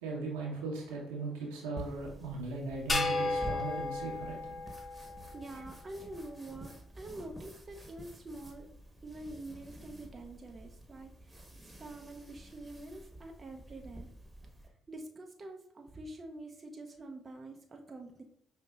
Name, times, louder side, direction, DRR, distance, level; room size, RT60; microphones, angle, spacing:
voice 1, 0.0-4.6, right 3 dB, 90° right, -2 dB, 1.0 m, -38 dB
sound 1, 1.8-14.7, right 1 dB, 15° right, 1.2 m, -50 dB
sound 2, 2.9-5.5, left 2 dB, 35° left, 0.7 m, -34 dB
voice 2, 5.3-8.7 9.0-11.5 11.8-14.1 14.9-18.2, right 2 dB, 40° right, 3 dB, 0.6 m, -46 dB
5.5 x 2.7 x 2.4 m, 0.72 s
hypercardioid pair, 50°, 0 cm